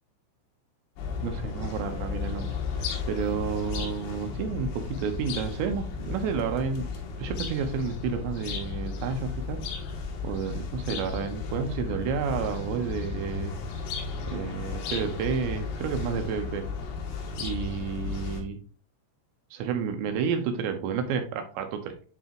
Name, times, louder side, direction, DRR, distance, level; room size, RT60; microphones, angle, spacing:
sound 1, 1.0-18.4, left 5 dB, 85° left, 4.2 m, -34 dB
voice 1, 1.2-6.9 7.2-9.6 10.2-13.5 14.3-16.7 17.4-18.6 19.5-22.0, right 6 dB, 75° right, 6 dB, 2.7 m, -31 dB
10.5 x 4.1 x 2.9 m, 0.38 s
omnidirectional pair, 5.8 m